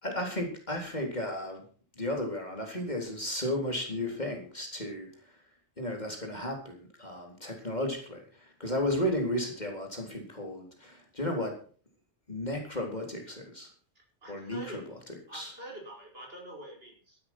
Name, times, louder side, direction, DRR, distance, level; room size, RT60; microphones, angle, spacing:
voice 1, 0.0-1.6 2.0-5.3 5.8-11.6 12.3-13.7 14.3-14.8 15.3-15.5, left 1 dB, 35° left, 2 dB, 4.0 m, -34 dB
voice 2, 14.2-14.9 15.3-17.2, right 1 dB, 55° right, -1 dB, 6.5 m, -45 dB
13.5 x 12.5 x 6.1 m, 0.42 s
omnidirectional pair, 1.2 m